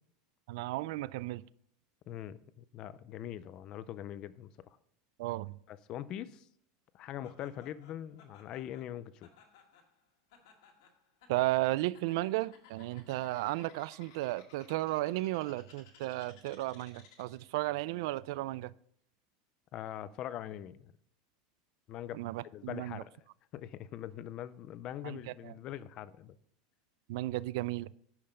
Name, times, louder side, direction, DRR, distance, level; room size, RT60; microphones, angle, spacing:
voice 1, 0.5-1.4 5.2-5.6 11.3-18.7 22.1-23.0 25.0-25.2 25.4-25.5 27.1-27.9, right 18 dB, 60° right, 0.3 m, -34 dB
voice 2, 2.1-4.8 5.7-6.5 6.9-9.3 19.7-20.9 21.9-22.2 22.5-23.1 23.5-26.4, left 11 dB, 30° left, 0.4 m, -42 dB
Laughter, 7.2-17.5, left 6 dB, 70° left, 1.9 m, -60 dB
10.5 x 5.7 x 5.1 m
supercardioid pair, 180°, 3 cm